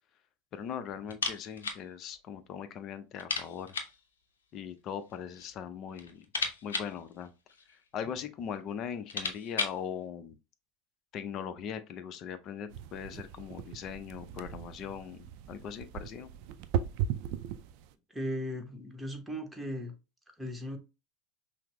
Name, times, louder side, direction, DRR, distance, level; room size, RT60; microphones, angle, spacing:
voice 1, 0.5-3.7 4.5-6.3 6.6-7.3 7.7-10.4 11.1-16.3, left 8 dB, 45° left, 0.5 m, -40 dB
sound 1, 1.1-1.9 2.1-2.2 2.6-2.7 3.2-4.0 5.0-5.6 5.9-7.9 8.6-8.7 8.9-9.9, left 4 dB, 90° left, 0.6 m, -36 dB
sound 2, 12.7-17.9, right 9 dB, 60° right, 0.4 m, -37 dB
voice 2, 18.1-19.9 20.4-20.8, equal, 5° right, 1.1 m, -37 dB
5.6 x 2.0 x 3.0 m
hypercardioid pair, 85°, 0 cm